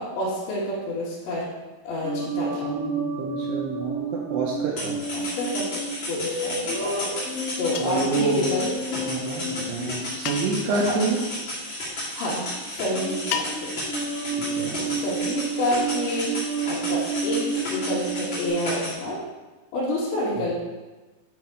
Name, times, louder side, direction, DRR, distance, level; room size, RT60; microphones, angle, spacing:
voice 1, 0.0-1.5 1.8-2.7 5.1-7.1 7.6-9.0 10.7-11.0 12.2-13.7 14.8-16.3 16.6-19.2 19.7-20.6, left 1 dB, 75° left, -11 dB, 3.9 m, -29 dB
sound 1, 2.0-11.4 12.2-12.5 12.8-18.5, right 2 dB, 35° right, 2.6 m, -31 dB
voice 2, 2.6-5.0 7.8-8.5 9.1-11.2 14.4-14.8, right 4 dB, 80° right, -2 dB, 2.5 m, -28 dB
sound 2, 4.8-18.9, left 1 dB, 35° left, 2.2 m, -33 dB
sound 3, 7.7-8.2 10.2-10.8 13.3-13.9, left 8 dB, 90° left, 2.4 m, -32 dB
9.6 x 4.1 x 4.9 m, 1.2 s
omnidirectional pair, 5.5 m